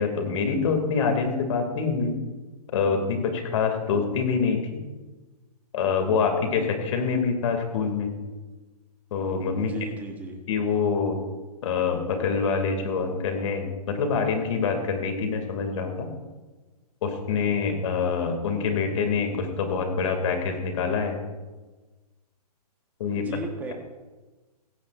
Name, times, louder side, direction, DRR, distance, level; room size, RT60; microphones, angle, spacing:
voice 1, 0.0-2.2 2.7-4.8 5.7-8.1 9.1-9.7 10.5-11.2 11.6-16.1 17.0-21.2 23.0-23.3, left 5 dB, 50° left, 5 dB, 2.4 m, -25 dB
voice 2, 9.6-10.4 23.1-23.7, right 4 dB, 10° right, 2 dB, 1.2 m, -36 dB
16.0 x 15.0 x 2.5 m, 1.2 s
hypercardioid pair, 155°, 20 cm